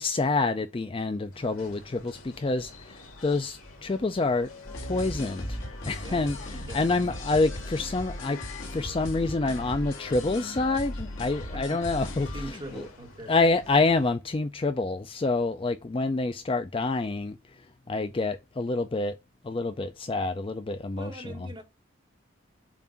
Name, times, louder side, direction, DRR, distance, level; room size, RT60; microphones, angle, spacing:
voice 1, 0.0-4.5 4.9-5.6 5.9-8.4 8.7-12.9 13.3-17.4 17.9-19.2 19.4-21.5, left 3 dB, 25° left, 0.3 m, -27 dB
sound 1, 1.3-14.1, left 2 dB, 90° left, 2.4 m, -49 dB
sound 2, 4.6-12.5, left 1 dB, 65° left, 1.7 m, -37 dB
voice 2, 12.3-13.3 21.0-21.6, right 1 dB, 20° right, 1.4 m, -41 dB
7.2 x 2.5 x 5.6 m
head